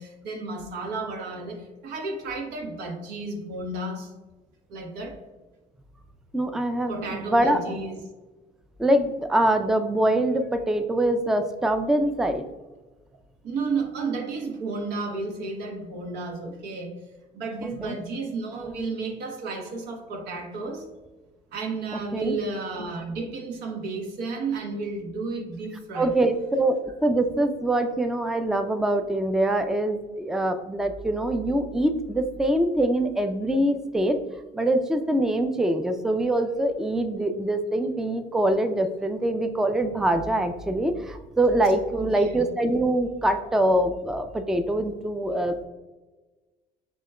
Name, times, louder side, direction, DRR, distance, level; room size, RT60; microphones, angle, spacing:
voice 1, 0.0-4.1 4.7-5.2 6.9-8.0 13.4-16.9 17.3-20.8 21.5-26.1 41.9-42.4, right 3 dB, 90° right, 2 dB, 1.0 m, -32 dB
voice 2, 6.3-7.8 8.8-12.4 17.6-17.9 22.1-22.4 25.9-34.2 34.5-45.5, right 1 dB, 5° right, 8 dB, 0.3 m, -24 dB
7.2 x 3.0 x 2.2 m, 1.2 s
cardioid pair, 110°, 17 cm